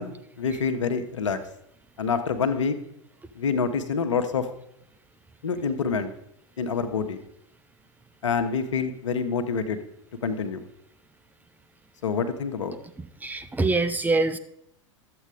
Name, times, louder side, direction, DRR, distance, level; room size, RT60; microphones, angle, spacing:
voice 1, 0.0-1.4 2.0-2.8 3.3-4.5 5.4-6.1 6.6-7.2 8.2-9.8 10.2-10.6 12.0-12.7, left 5 dB, 75° left, 8 dB, 1.2 m, -27 dB
voice 2, 13.2-14.4, right 3 dB, 10° right, 9 dB, 0.7 m, -24 dB
12.5 x 7.9 x 4.9 m, 0.76 s
figure-of-eight pair, 90°, 16 cm